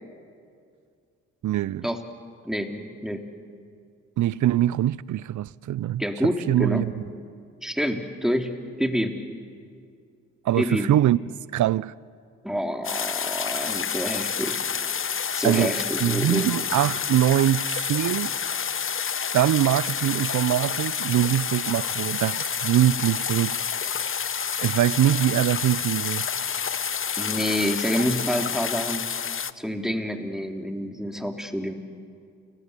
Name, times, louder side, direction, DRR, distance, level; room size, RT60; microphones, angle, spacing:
voice 1, 1.4-1.9 4.2-6.9 10.4-11.2 11.5-11.9 15.4-15.7 16.0-18.3 19.3-23.6 24.6-26.3, right 13 dB, 60° right, 0.7 m, -23 dB
voice 2, 2.5-3.3 6.0-6.9 7.6-9.2 10.6-10.9 12.4-14.6 15.3-16.5 27.2-29.2 29.6-31.7, equal, ahead, 3.4 m, -28 dB
sound 1, 12.8-29.5, left 7 dB, 40° left, 1.0 m, -29 dB
30.0 x 19.5 x 8.3 m
supercardioid pair, 50°, 34 cm